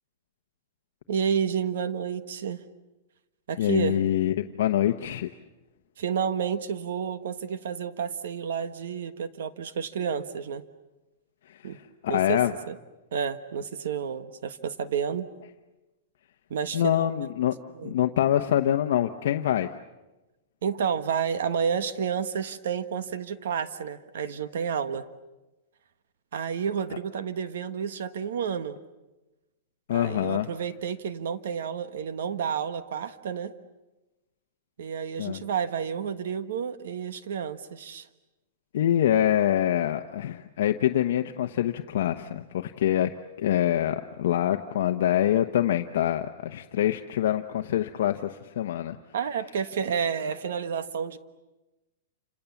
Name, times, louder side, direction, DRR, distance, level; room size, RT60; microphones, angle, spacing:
voice 1, 1.1-2.6 3.5-4.0 6.0-10.6 11.6-11.8 12.1-12.4 12.7-12.8 13.1-15.3 16.5-17.1 17.7-17.9 20.6-25.1 26.3-28.8 29.9-33.5 34.8-38.1 49.1-51.2, right 7 dB, 65° right, 12 dB, 1.4 m, -30 dB
voice 2, 3.6-5.3 11.5-11.8 12.0-12.5 16.7-17.5 17.8-19.7 29.9-30.5 35.2-35.4 38.7-43.1 43.4-49.0, left 11 dB, 60° left, 5 dB, 1.0 m, -25 dB
29.0 x 27.0 x 7.2 m, 1.1 s
supercardioid pair, 180°, 0 cm